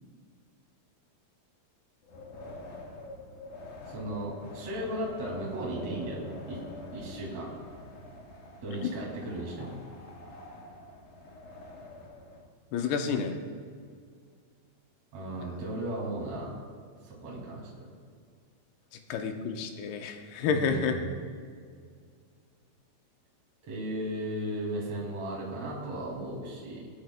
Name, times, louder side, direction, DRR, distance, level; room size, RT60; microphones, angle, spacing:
Wind, 2.0-12.4, left 2 dB, 60° left, 2.7 m, -46 dB
voice 1, 3.9-6.2 6.5-7.5 8.6-9.7 15.1-16.5 17.0-18.0 20.5-21.1 23.7-26.9, right 1 dB, 45° right, -4 dB, 3.3 m, -36 dB
voice 2, 12.7-13.4 15.4-15.5 19.1-20.9, left 5 dB, 85° left, 4 dB, 2.9 m, -30 dB
24.5 x 9.1 x 2.2 m, 2.1 s
omnidirectional pair, 4.5 m